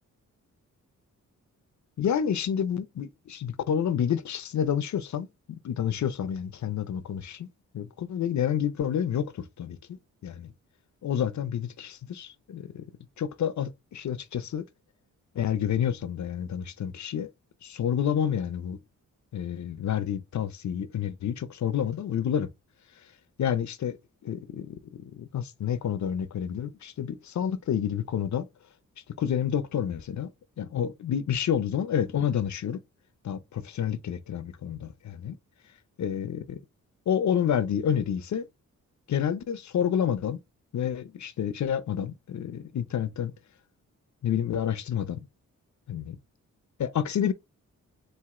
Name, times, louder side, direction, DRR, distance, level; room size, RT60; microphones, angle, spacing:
voice 1, 2.0-7.5 7.7-9.8 10.2-10.5 11.0-12.9 13.2-14.6 15.3-17.3 17.6-18.8 19.3-22.5 23.4-24.0 24.2-28.5 29.2-30.3 30.6-32.8 33.2-35.4 36.0-36.6 37.1-38.5 39.1-40.4 40.7-43.3 44.2-45.2 45.9-46.2 46.8-47.3, left 9 dB, 65° left, 0.7 m, -29 dB
4.4 x 2.7 x 3.7 m
cardioid pair, 80°, 31 cm